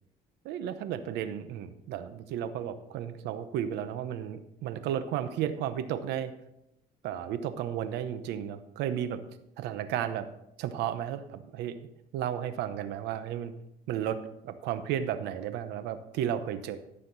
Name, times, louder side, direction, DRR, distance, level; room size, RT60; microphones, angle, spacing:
voice 1, 0.4-6.3 7.0-9.2 9.6-10.3 10.6-11.8 12.1-13.5 13.9-16.8, right 10 dB, 85° right, 11 dB, 0.9 m, -33 dB
13.5 x 6.6 x 4.0 m, 0.81 s
cardioid pair, 110°, 17 cm